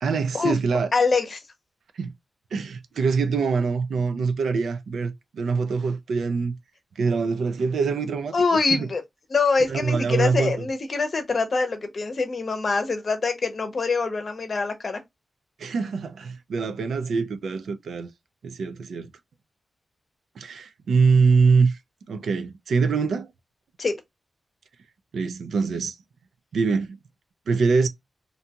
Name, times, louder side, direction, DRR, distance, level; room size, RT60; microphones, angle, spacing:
voice 1, 0.0-0.9 2.0-2.1 2.5-6.5 7.0-8.9 9.7-10.5 15.6-18.1 18.4-19.1 20.4-21.8 22.1-23.3 25.1-26.0 26.5-27.0 27.5-27.9, right 5 dB, 90° right, 0.4 m, -24 dB
voice 2, 0.9-1.4 8.3-9.0 9.3-15.0 23.8-23.9, left 4 dB, 45° left, 0.6 m, -24 dB
2.6 x 2.2 x 2.8 m
wide cardioid pair, 125°, 0 cm